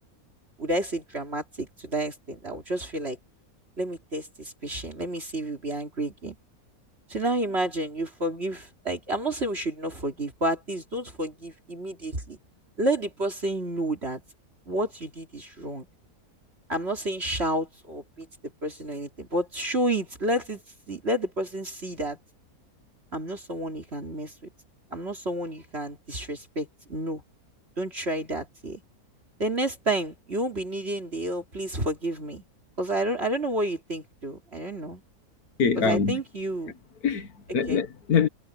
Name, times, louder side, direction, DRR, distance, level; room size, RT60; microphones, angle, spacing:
voice 1, 0.6-3.2 3.8-6.4 7.1-12.4 12.8-14.2 14.7-15.9 16.7-18.3 18.6-20.6 20.9-22.2 23.1-24.3 24.9-27.2 27.8-28.8 29.4-32.4 32.8-35.0 35.8-36.7 37.7-37.8, right 1 dB, 45° right, 3.5 m, -30 dB
voice 2, 35.6-36.2 37.0-38.3, left 6 dB, 80° left, 2.0 m, -24 dB
omnidirectional pair, 1.6 m